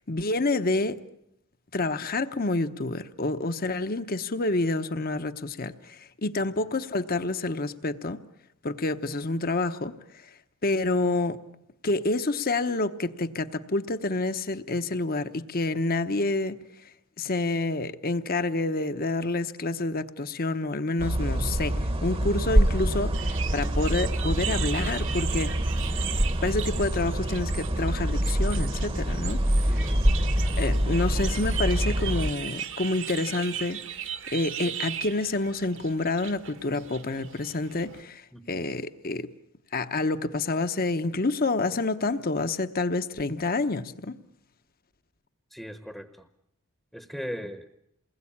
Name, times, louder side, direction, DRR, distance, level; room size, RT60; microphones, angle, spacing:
voice 1, 0.1-1.0 1.7-8.2 8.6-10.0 10.6-11.4 11.8-16.6 17.2-25.5 26.4-29.4 30.6-33.8 34.3-38.2 38.5-39.3 39.7-44.2, left 2 dB, 40° left, 1.0 m, -28 dB
sound 1, 21.0-32.3, equal, 25° right, 1.1 m, -26 dB
sound 2, 23.1-38.0, right 9 dB, 60° right, 1.5 m, -37 dB
voice 2, 29.7-30.1 38.3-38.6 45.5-46.1 46.9-47.6, equal, ahead, 1.0 m, -38 dB
28.0 x 21.0 x 8.7 m
head